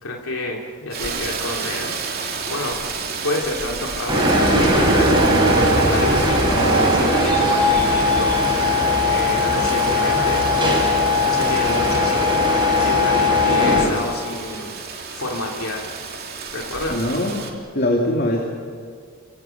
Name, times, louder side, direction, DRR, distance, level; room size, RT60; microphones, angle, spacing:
voice 1, 0.0-2.8 3.2-15.9 16.5-17.0, left 2 dB, 80° left, -1 dB, 2.9 m, -30 dB
Rain, 0.9-17.5, right 5 dB, 45° right, 3.2 m, -31 dB
sound 1, 4.1-13.8, left 1 dB, 20° right, 6.4 m, -18 dB
voice 2, 16.9-17.5 17.7-18.4, left 1 dB, 45° left, 0 dB, 2.7 m, -21 dB
29.0 x 25.0 x 5.9 m, 2.1 s
head